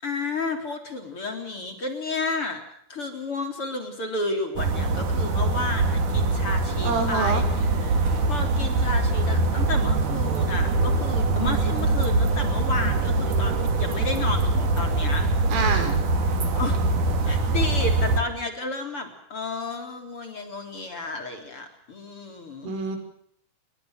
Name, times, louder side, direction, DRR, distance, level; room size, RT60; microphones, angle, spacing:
voice 1, 0.0-2.6 2.9-15.3 16.5-16.9 17.2-22.7, left 2 dB, 30° left, 6 dB, 4.0 m, -32 dB
sound 1, 4.6-18.2, right 2 dB, 45° right, 3.7 m, -23 dB
voice 2, 6.8-7.4 15.5-16.0 22.6-23.0, right 4 dB, 80° right, 6 dB, 8.2 m, -26 dB
28.5 x 23.5 x 6.6 m, 0.67 s
omnidirectional pair, 5.7 m